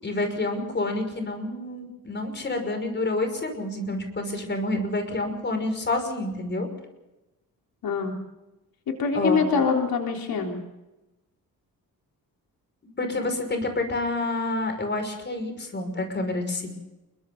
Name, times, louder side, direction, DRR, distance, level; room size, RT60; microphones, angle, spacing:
voice 1, 0.0-6.7 9.1-9.4 13.0-16.7, left 2 dB, 30° left, 6 dB, 5.8 m, -28 dB
voice 2, 7.8-8.2 8.9-10.6, left 5 dB, 85° left, 2 dB, 3.8 m, -24 dB
28.5 x 23.5 x 4.0 m, 1.0 s
wide cardioid pair, 145°, 35 cm